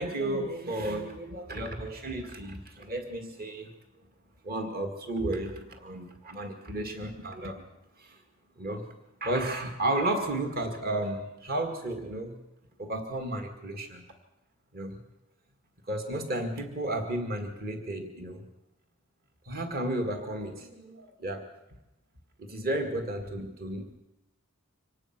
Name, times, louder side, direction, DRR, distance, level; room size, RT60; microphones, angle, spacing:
voice 1, 0.0-3.7 4.4-7.6 8.0-8.2 8.6-8.9 9.2-12.4 12.8-14.0 14.7-15.0 15.9-18.4 19.5-21.5 22.4-24.0, right 1 dB, 45° right, 5 dB, 2.2 m, -33 dB
25.0 x 19.0 x 6.1 m, 0.90 s
head